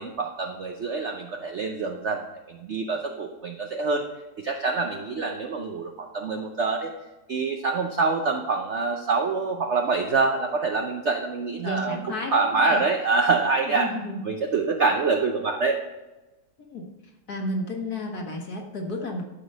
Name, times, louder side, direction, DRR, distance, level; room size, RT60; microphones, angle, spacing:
voice 1, 0.0-2.2 2.5-4.0 4.4-6.9 7.3-12.0 12.3-13.9 14.3-15.8, right 4 dB, 60° right, 3 dB, 0.7 m, -25 dB
voice 2, 11.6-12.8 13.7-14.2 16.6-16.9 17.3-19.2, left 1 dB, 55° left, 1 dB, 1.9 m, -32 dB
11.5 x 5.0 x 5.4 m, 1.1 s
omnidirectional pair, 2.0 m